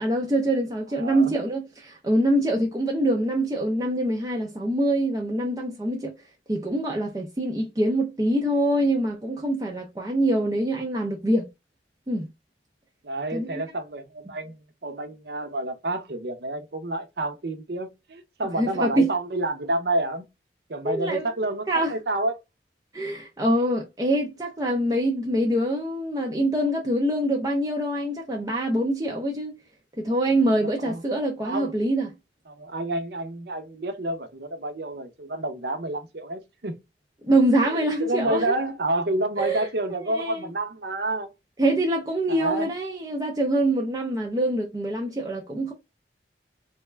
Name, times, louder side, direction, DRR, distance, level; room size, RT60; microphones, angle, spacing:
voice 1, 0.0-6.1 6.5-11.5 12.1-12.3 13.3-13.6 18.6-19.1 20.8-21.2 21.7-21.9 22.9-29.6 30.0-32.1 37.2-38.5 39.4-39.7 40.1-40.5 41.6-45.7, right 1 dB, 20° right, 0.4 m, -24 dB
voice 2, 0.9-1.3 13.0-20.2 20.7-22.4 30.6-31.0 31.4-31.7 32.5-36.8 37.7-41.3 42.3-42.7, right 2 dB, 60° right, 0.7 m, -29 dB
3.3 x 2.3 x 3.2 m
head